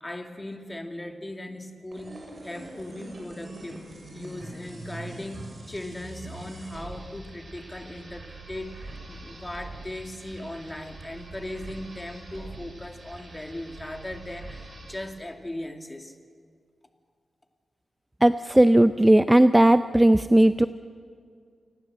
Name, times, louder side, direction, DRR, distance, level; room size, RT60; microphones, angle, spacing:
voice 1, 0.0-3.8 4.1-16.1, left 1 dB, 20° left, 5 dB, 2.2 m, -38 dB
sound 1, 1.9-15.1, right 2 dB, 50° right, 6.8 m, -43 dB
voice 2, 18.2-20.7, right 1 dB, 10° right, 12 dB, 0.5 m, -17 dB
28.0 x 19.5 x 7.7 m, 2.1 s
cardioid pair, 80°, 0 cm